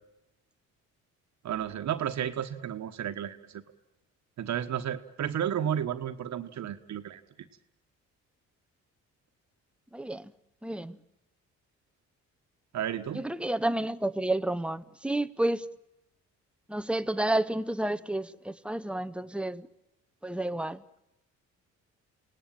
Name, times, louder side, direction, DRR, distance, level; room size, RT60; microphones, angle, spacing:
voice 1, 1.4-3.6 4.4-7.2 12.7-13.2, right 9 dB, 65° right, 1.4 m, -32 dB
voice 2, 9.9-10.3 10.6-11.0 13.1-15.7 16.7-19.7 20.2-20.8, right 1 dB, 5° right, 0.8 m, -30 dB
28.5 x 18.5 x 9.0 m
cardioid pair, 90°, 30 cm